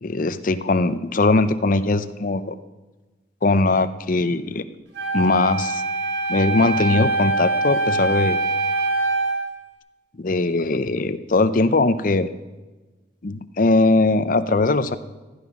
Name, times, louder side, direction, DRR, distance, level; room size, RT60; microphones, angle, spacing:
voice 1, 0.0-2.5 3.4-4.6 5.1-5.8 6.3-8.4 10.2-12.3 13.2-15.0, left 2 dB, 45° left, 12 dB, 0.6 m, -20 dB
Wind instrument woodwind instrument, 4.9-9.4, right 2 dB, 80° right, 3.7 m, -23 dB
15.0 x 11.0 x 5.9 m, 1.2 s
head